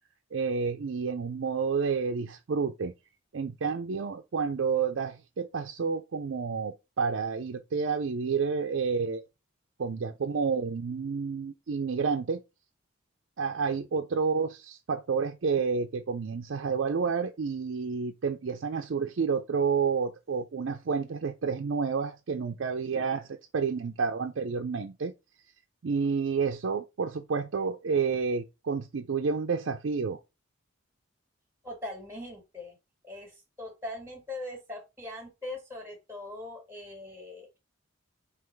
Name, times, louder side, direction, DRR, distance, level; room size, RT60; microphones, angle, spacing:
voice 1, 0.3-2.9 3.3-9.2 9.8-12.4 13.4-25.1 25.8-30.2, right 5 dB, 60° right, 0.4 m, -30 dB
voice 2, 31.6-32.7 33.0-37.6, left 1 dB, 10° right, 1.5 m, -41 dB
3.8 x 2.9 x 4.4 m
head